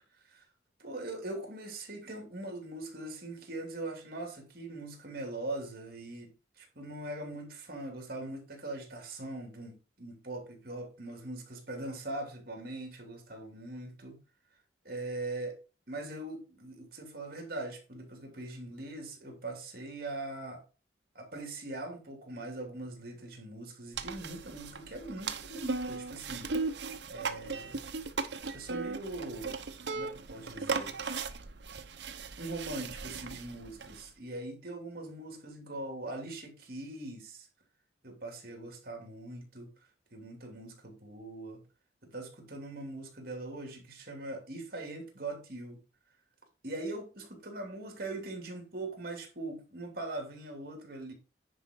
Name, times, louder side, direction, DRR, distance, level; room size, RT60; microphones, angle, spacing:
voice 1, 0.8-6.3 6.6-14.2 14.8-15.5 15.9-20.6 21.1-27.8 28.5-29.6 29.9-30.9 32.4-37.5 38.0-39.7 40.1-41.6 42.0-45.8 46.6-51.1, right 2 dB, 55° right, 3.0 m, -41 dB
sound 1, 23.9-34.1, right 4 dB, 70° right, 0.9 m, -37 dB
9.9 x 4.9 x 4.6 m
head